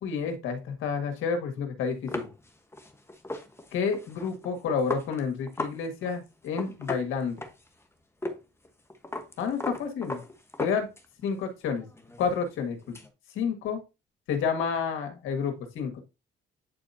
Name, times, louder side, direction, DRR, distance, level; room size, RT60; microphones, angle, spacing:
voice 1, 0.0-2.3 3.7-7.4 9.4-10.2 10.6-10.9 11.2-11.9 12.2-13.0 13.3-13.8 14.3-16.0, left 6 dB, 90° left, 6 dB, 1.8 m, -30 dB
sound 1, 2.1-5.8 6.0-6.2 6.4-7.8 8.2-8.4 8.6-11.3 11.7-13.1, left 1 dB, 10° left, 1.2 m, -37 dB
9.6 x 4.2 x 2.8 m, 0.26 s
cardioid pair, 90°, 20 cm